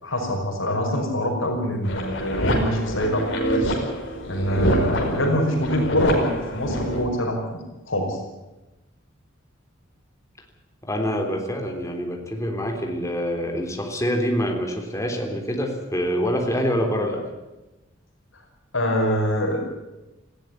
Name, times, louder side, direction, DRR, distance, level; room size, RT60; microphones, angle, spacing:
voice 1, 0.0-3.3 3.5-3.7 4.3-7.4 7.9-8.2 18.7-19.6, equal, 85° left, 2 dB, 5.4 m, -24 dB
sound 1, 1.8-7.0, equal, 70° left, 5.1 m, -25 dB
voice 2, 10.8-17.2, equal, 15° left, 2 dB, 3.5 m, -26 dB
19.0 x 15.5 x 9.9 m, 1.1 s
head